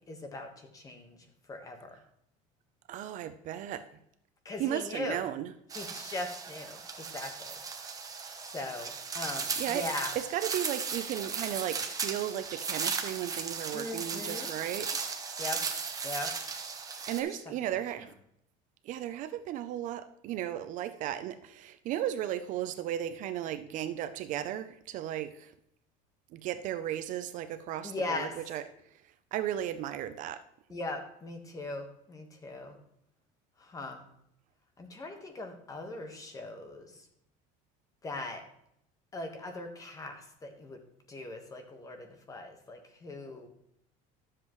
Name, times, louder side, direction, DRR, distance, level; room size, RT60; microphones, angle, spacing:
voice 1, 0.1-1.2 1.5-1.9 4.4-5.2 5.7-6.8 7.1-7.6 8.4-10.1 13.7-14.5 15.4-15.6 16.0-16.3 17.1-17.3 27.8-28.3 30.7-32.8 33.6-34.0 34.8-36.9 38.0-38.4 39.1-40.8 41.1-43.5, left 2 dB, 20° left, 1.4 m, -39 dB
voice 2, 2.9-4.0 4.6-5.5 9.6-9.9 10.1-15.0 17.1-18.1 18.8-25.5 26.3-28.6 29.3-30.4, right 11 dB, 50° right, 0.5 m, -35 dB
sound 1, 5.7-17.2, right 5 dB, 20° right, 0.9 m, -36 dB
12.5 x 7.6 x 3.1 m
cardioid pair, 145°, 17 cm